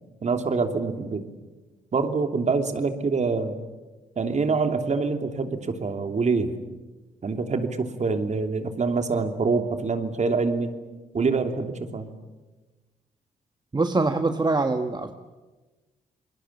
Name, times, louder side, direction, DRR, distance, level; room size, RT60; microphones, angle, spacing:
voice 1, 0.2-1.3 1.9-3.6 4.2-6.5 7.2-10.7 11.1-12.1, right 4 dB, 50° right, 7 dB, 3.0 m, -25 dB
voice 2, 13.7-15.1, right 3 dB, 25° right, 8 dB, 1.5 m, -23 dB
28.0 x 21.5 x 8.6 m, 1.2 s
supercardioid pair, 60°, 16 cm